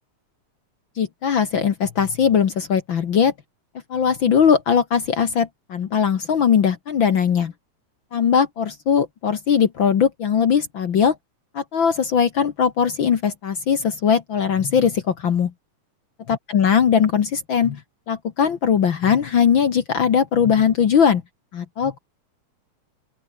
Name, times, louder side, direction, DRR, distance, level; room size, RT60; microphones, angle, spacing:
voice 1, 1.0-3.3 3.9-7.5 8.1-11.2 11.5-15.5 16.3-17.8 18.1-21.2 21.5-22.0, left 7 dB, 50° left, 1.6 m, -19 dB
open air
omnidirectional pair, 3.6 m